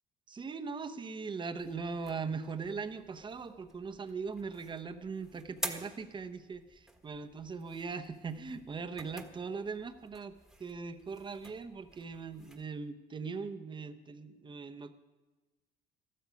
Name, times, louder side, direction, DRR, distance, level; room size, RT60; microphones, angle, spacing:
voice 1, 0.3-10.3 10.6-15.0, right 5 dB, 30° right, 9 dB, 0.9 m, -40 dB
sound 1, 1.6-12.7, right 1 dB, ahead, 1.4 m, -49 dB
14.0 x 13.0 x 5.2 m, 1.2 s
cardioid pair, 110°, 17 cm